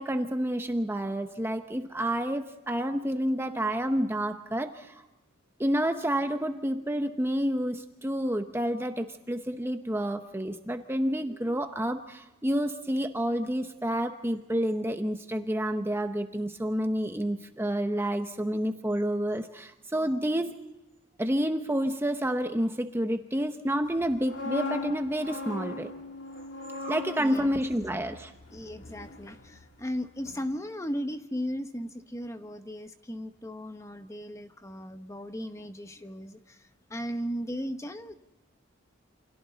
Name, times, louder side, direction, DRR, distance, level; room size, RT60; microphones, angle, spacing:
voice 1, 0.0-5.0 5.6-20.6 21.2-25.9 26.8-28.3, equal, 10° right, 6 dB, 0.9 m, -29 dB
sound 1, 24.0-29.9 30.2-30.5, left 2 dB, 60° left, 2.7 m, -39 dB
voice 2, 27.2-27.6 28.5-36.6 36.9-38.1, equal, 15° left, 8 dB, 1.1 m, -36 dB
28.5 x 26.5 x 4.0 m, 1.0 s
head